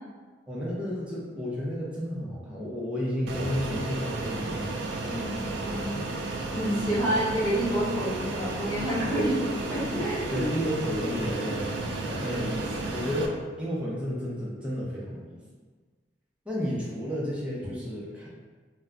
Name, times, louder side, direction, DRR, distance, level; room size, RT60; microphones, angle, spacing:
voice 1, 0.5-4.7 10.3-11.7 12.0-15.4 16.5-18.3, equal, 5° right, -6 dB, 0.5 m, -32 dB
Fixed-wing aircraft airplane, 3.3-13.3, right 2 dB, 85° right, 0.4 m, -33 dB
voice 2, 5.0-9.4 9.7-10.4, equal, 10° left, -11 dB, 1.0 m, -29 dB
2.3 x 2.1 x 3.6 m, 1.4 s
head